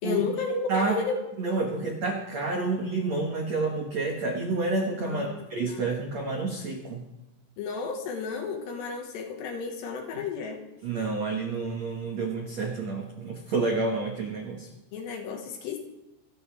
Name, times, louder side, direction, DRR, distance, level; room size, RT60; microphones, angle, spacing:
voice 1, 0.0-1.2 5.0-5.8 7.6-10.6 14.9-15.8, left 5 dB, 65° left, 3 dB, 3.5 m, -32 dB
voice 2, 1.4-7.0 10.8-14.7, right 3 dB, 75° right, 1 dB, 1.5 m, -29 dB
26.0 x 12.5 x 3.5 m, 0.99 s
omnidirectional pair, 5.8 m